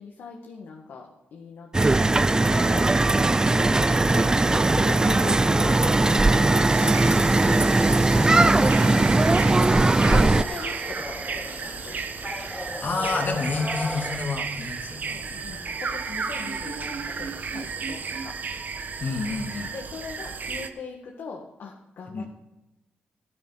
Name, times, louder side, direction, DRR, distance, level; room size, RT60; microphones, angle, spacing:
voice 1, 0.0-2.9 3.7-7.7 9.4-12.0 15.1-18.4 19.7-22.3, left 4 dB, 75° left, -1 dB, 1.9 m, -39 dB
sound 1, 1.7-10.4, right 2 dB, 20° right, 0.4 m, -19 dB
sound 2, 3.9-14.2, left 1 dB, 15° left, 0.7 m, -38 dB
sound 3, 6.7-20.7, right 5 dB, 50° right, 1.1 m, -33 dB
voice 2, 8.3-9.1 12.8-15.6 19.0-19.7 22.1-22.3, left 4 dB, 50° left, 3 dB, 2.5 m, -30 dB
13.0 x 12.0 x 4.2 m, 0.97 s
cardioid pair, 75°, 4 cm